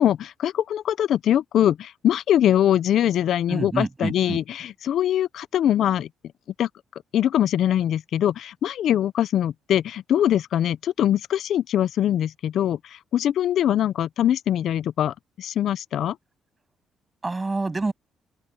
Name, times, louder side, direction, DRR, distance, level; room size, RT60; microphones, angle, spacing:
voice 1, 0.0-6.1 6.6-6.7 7.1-16.2, left 11 dB, 70° left, 0.5 m, -22 dB
voice 2, 3.5-4.4 17.2-17.9, right 3 dB, 20° right, 8.0 m, -27 dB
open air
cardioid pair, 90°, 0 cm